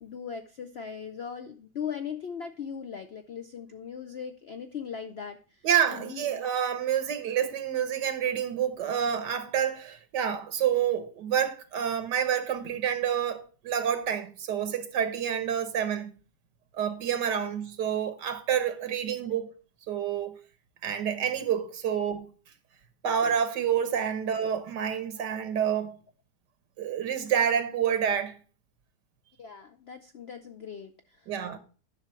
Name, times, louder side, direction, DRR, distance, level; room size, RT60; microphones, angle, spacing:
voice 1, 0.0-6.4 29.4-31.3, left 7 dB, 70° left, 0.6 m, -39 dB
voice 2, 5.6-16.1 16.7-19.5 19.9-20.4 20.8-22.3 23.0-26.0 26.8-28.4 31.3-31.6, right 8 dB, 90° right, 1.7 m, -28 dB
10.5 x 5.8 x 4.5 m
omnidirectional pair, 1.8 m